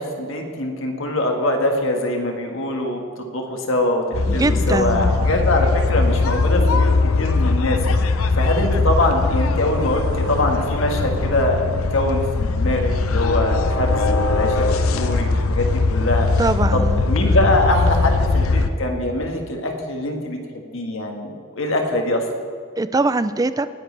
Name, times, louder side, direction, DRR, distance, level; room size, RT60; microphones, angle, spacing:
voice 1, 0.0-6.9 7.2-7.8 8.0-16.3 16.7-22.2, left 1 dB, 70° left, 3 dB, 1.6 m, -23 dB
sound 1, 4.1-18.7, left 3 dB, 85° left, 0.7 m, -20 dB
voice 2, 4.3-5.1 16.4-17.0 22.8-23.7, right 2 dB, 15° right, 13 dB, 0.3 m, -22 dB
19.5 x 10.0 x 3.3 m, 2.2 s
head